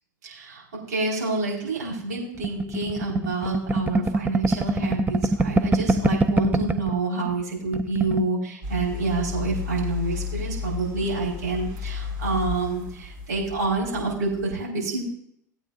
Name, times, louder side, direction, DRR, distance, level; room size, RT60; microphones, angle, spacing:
voice 1, 0.2-15.0, right 3 dB, 80° right, -4 dB, 4.7 m, -28 dB
sound 1, 2.4-7.0 7.3-7.4 7.7-8.3, right 2 dB, 15° right, 0.7 m, -23 dB
sound 2, 8.6-14.4, left 6 dB, 50° right, 4.2 m, -33 dB
18.5 x 8.7 x 2.6 m, 0.69 s
hypercardioid pair, 90°, 10 cm